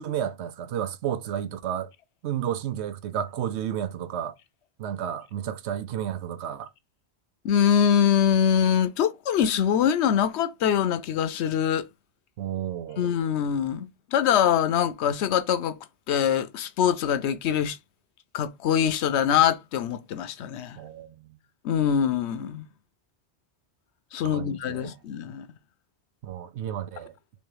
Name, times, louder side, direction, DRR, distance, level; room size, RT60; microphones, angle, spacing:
voice 1, 0.0-1.9 2.2-4.3 4.8-6.7 12.4-13.1 20.8-21.4 24.2-25.0 26.2-27.1, right 10 dB, 90° right, 0.9 m, -32 dB
voice 2, 7.4-11.9 13.0-15.8 16.1-17.8 18.3-20.8 21.6-22.7 24.1-25.5, left 8 dB, 85° left, 0.9 m, -23 dB
3.4 x 3.1 x 4.8 m
omnidirectional pair, 1.1 m